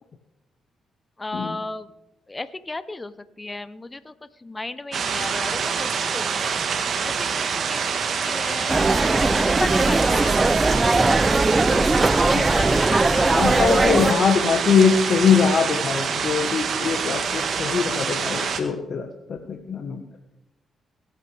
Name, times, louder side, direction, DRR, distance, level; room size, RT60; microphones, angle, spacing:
voice 1, 1.2-1.9 2.3-4.1 4.4-6.5 7.0-8.0 8.2-10.4 11.7-14.1, left 2 dB, 25° left, 14 dB, 0.8 m, -34 dB
sound 1, 4.9-18.6, right 6 dB, 65° right, 1.5 m, -26 dB
sound 2, 8.7-14.1, right 2 dB, 25° right, 0.6 m, -20 dB
voice 2, 12.3-12.8 13.3-20.0, left 6 dB, 60° left, 4 dB, 1.3 m, -22 dB
22.0 x 9.4 x 3.5 m, 0.93 s
supercardioid pair, 55°, 0 cm